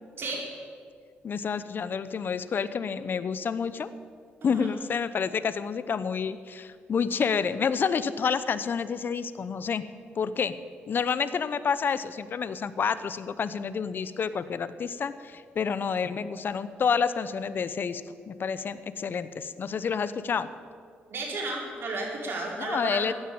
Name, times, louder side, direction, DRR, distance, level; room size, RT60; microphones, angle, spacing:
voice 1, 1.2-3.9 4.4-9.8 10.2-10.5 10.9-20.5 22.6-23.1, left 6 dB, 50° left, 14 dB, 0.8 m, -29 dB
voice 2, 21.1-23.1, right 2 dB, 60° right, -1 dB, 4.6 m, -33 dB
14.5 x 9.8 x 8.9 m, 2.1 s
cardioid pair, 75°, 4 cm